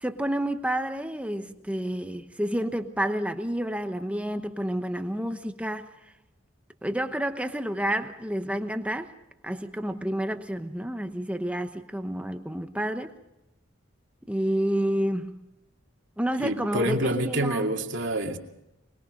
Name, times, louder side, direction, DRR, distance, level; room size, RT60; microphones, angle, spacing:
voice 1, 0.0-5.9 6.8-9.1 9.4-13.1 14.3-15.5 16.2-17.7, right 1 dB, 5° right, 0.9 m, -29 dB
voice 2, 16.4-18.4, right 1 dB, 65° right, 2.4 m, -27 dB
25.0 x 21.0 x 5.3 m
head